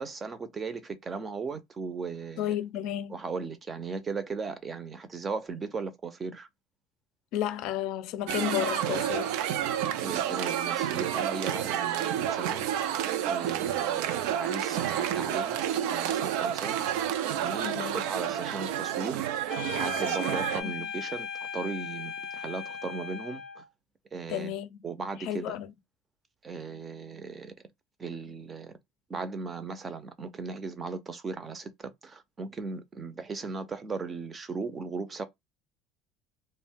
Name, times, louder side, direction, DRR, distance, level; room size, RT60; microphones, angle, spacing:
voice 1, 0.0-2.6 3.1-6.5 10.0-12.7 13.3-16.8 17.4-19.3 19.7-23.6 24.1-24.5 24.8-25.6 26.4-27.5 28.0-28.7 29.1-35.2, right 4 dB, 25° right, 0.5 m, -37 dB
voice 2, 2.4-3.2 7.3-9.3 17.6-18.1 20.6-20.9 24.3-24.8 25.2-25.7, left 11 dB, 65° left, 0.4 m, -32 dB
sound 1, 8.3-20.6, right 10 dB, 80° right, 0.4 m, -30 dB
sound 2, 19.5-23.7, left 6 dB, 20° left, 0.7 m, -37 dB
2.5 x 2.1 x 3.4 m
cardioid pair, 135°, 0 cm